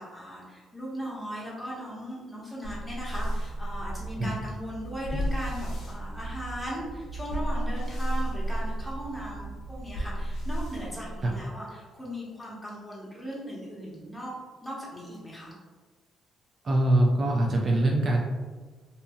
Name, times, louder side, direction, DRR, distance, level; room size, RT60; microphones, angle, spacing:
voice 1, 0.0-14.3 14.6-15.5, equal, 5° left, -6 dB, 1.0 m, -38 dB
sound 1, 2.6-11.6, right 1 dB, 70° left, 0.6 m, -33 dB
voice 2, 16.6-18.2, right 1 dB, 45° right, -1 dB, 0.4 m, -23 dB
2.7 x 2.6 x 2.3 m, 1.4 s
cardioid pair, 90°, 0 cm